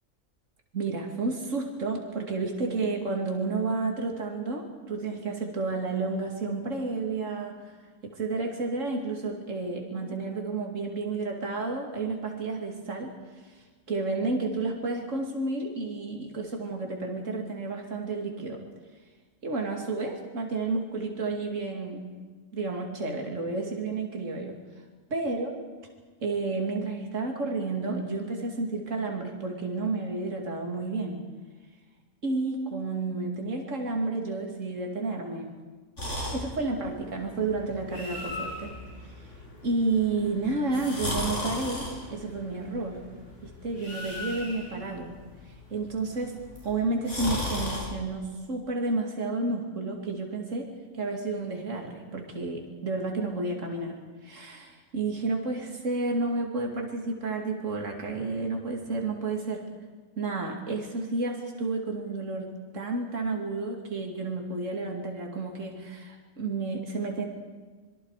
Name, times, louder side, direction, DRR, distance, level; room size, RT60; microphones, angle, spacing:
voice 1, 0.7-7.6 8.0-13.1 13.9-18.6 19.4-22.0 22.5-24.6 25.1-25.6 26.2-31.2 32.2-35.5 36.3-38.7 39.6-43.0 43.4-45.1 45.7-46.3 46.6-50.7 50.9-54.0 54.2-59.6 60.2-62.5 62.7-67.3, right 3 dB, 70° right, 1 dB, 2.9 m, -31 dB
sound 1, 36.0-47.8, left 1 dB, 65° left, 7.5 m, -37 dB
26.0 x 22.5 x 4.9 m, 1.4 s
omnidirectional pair, 1.3 m